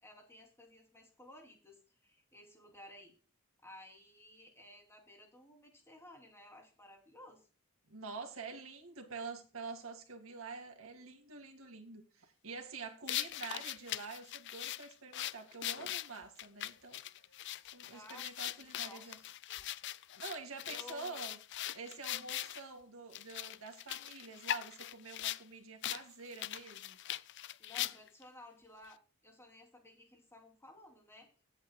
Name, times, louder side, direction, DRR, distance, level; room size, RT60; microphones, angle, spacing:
voice 1, 0.0-3.1 3.6-7.5 17.9-18.3 18.6-19.6 20.7-21.3 27.6-31.3, left 1 dB, 10° left, 1 dB, 2.9 m, -56 dB
voice 2, 7.9-17.0 17.7-19.2 20.1-21.4 21.7-27.0, right 4 dB, 75° right, 5 dB, 2.1 m, -47 dB
sound 1, 13.1-22.6 23.1-25.4 25.8-26.0 26.3-28.2, left 13 dB, 55° left, 0.5 m, -41 dB
16.5 x 8.1 x 2.2 m, 0.34 s
head